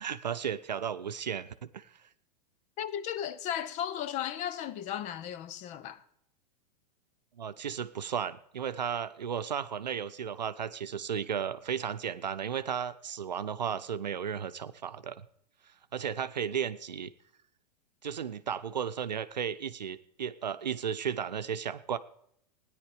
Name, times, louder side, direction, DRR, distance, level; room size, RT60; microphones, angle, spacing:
voice 1, 0.0-1.9 7.4-15.3 15.9-17.1 18.0-22.0, right 8 dB, 80° right, 0.7 m, -34 dB
voice 2, 2.8-6.0, left 10 dB, 35° left, 0.7 m, -35 dB
16.5 x 10.0 x 5.0 m
figure-of-eight pair, 100°, 21 cm